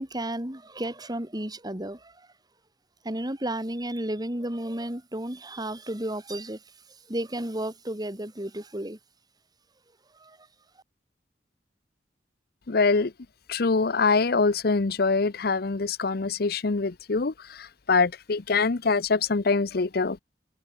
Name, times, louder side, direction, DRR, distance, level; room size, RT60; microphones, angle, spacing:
voice 1, 0.0-2.3 3.0-9.0 10.1-10.5, right 1 dB, 25° right, 3.6 m, -33 dB
voice 2, 12.7-13.1 13.5-20.2, left 4 dB, 60° left, 0.8 m, -24 dB
head